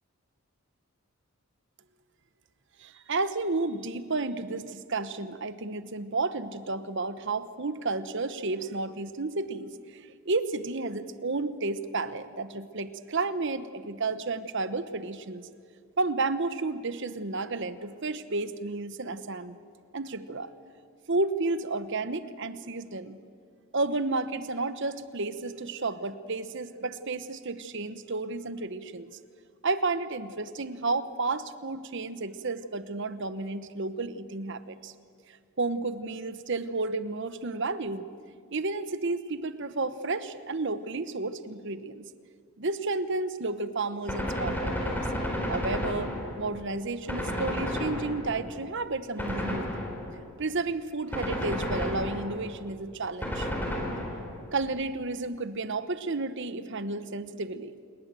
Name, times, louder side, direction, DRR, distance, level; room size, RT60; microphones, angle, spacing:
voice 1, 2.8-9.7 10.2-15.5 16.0-19.6 19.9-20.5 21.1-23.2 23.7-29.1 29.6-34.9 35.6-38.0 38.5-42.1 42.6-45.1 45.5-49.7 50.4-53.5 54.5-57.7, right 3 dB, 55° right, 13 dB, 1.0 m, -32 dB
Gunshot gunfire, 44.1-46.6 47.1-48.5 49.2-50.2 51.1-52.5 53.2-54.4, left 1 dB, 10° left, 4.0 m, -32 dB
28.0 x 20.5 x 7.6 m, 2.2 s
head